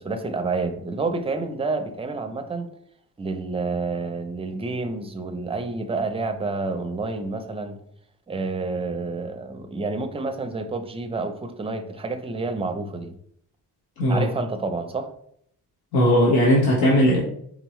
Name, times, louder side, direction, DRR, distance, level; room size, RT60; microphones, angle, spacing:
voice 1, 0.0-2.7 3.2-7.8 8.3-13.1 14.1-15.1, right 3 dB, 15° right, 7 dB, 0.5 m, -29 dB
voice 2, 14.0-14.3 15.9-17.2, equal, 80° left, -4 dB, 1.4 m, -18 dB
4.5 x 3.8 x 3.0 m, 0.67 s
cardioid pair, 125°, 37 cm